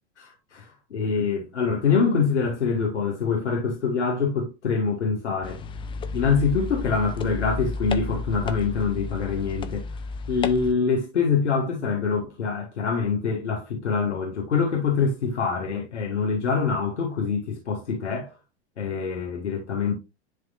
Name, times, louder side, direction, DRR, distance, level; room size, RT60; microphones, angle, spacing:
voice 1, 0.2-0.6 0.9-5.6 6.1-9.9 10.3-18.3 18.8-19.9, left 5 dB, 85° left, 1.8 m, -25 dB
sound 1, 5.4-10.7, left 4 dB, 15° left, 0.5 m, -32 dB
10.5 x 3.6 x 2.5 m
hypercardioid pair, 105°, 34 cm